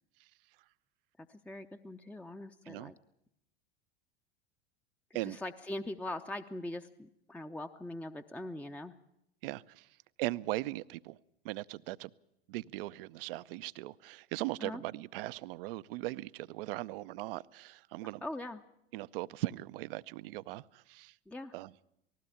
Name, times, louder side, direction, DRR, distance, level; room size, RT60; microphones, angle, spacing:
voice 1, 1.3-3.0 5.1-8.9 14.6-14.8 18.2-18.6 21.3-21.5, left 1 dB, 5° left, 7 dB, 0.7 m, -42 dB
voice 2, 9.4-9.9 10.2-11.2 11.4-12.1 12.5-18.2 18.9-21.1 21.5-21.7, right 18 dB, 60° right, 17 dB, 0.7 m, -39 dB
19.0 x 16.0 x 8.6 m, 0.81 s
hypercardioid pair, 85°, 31 cm